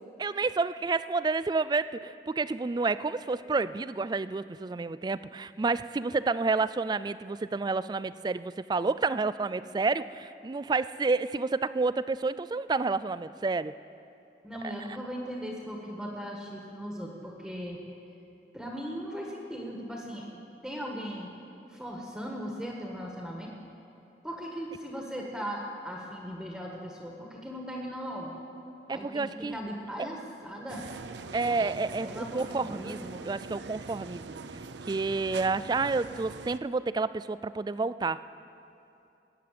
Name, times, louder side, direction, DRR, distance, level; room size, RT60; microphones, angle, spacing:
voice 1, 0.2-13.7 14.6-14.7 28.9-29.6 31.3-34.4 34.9-38.2, right 3 dB, 25° right, 15 dB, 0.3 m, -30 dB
voice 2, 14.4-17.8 18.5-21.3 21.7-23.5 24.2-28.3 28.9-30.8 31.4-31.7 32.0-33.0, equal, 5° right, -1 dB, 1.5 m, -38 dB
sound 1, 30.7-36.6, right 4 dB, 70° right, 0.6 m, -42 dB
19.5 x 9.6 x 7.5 m, 2.7 s
head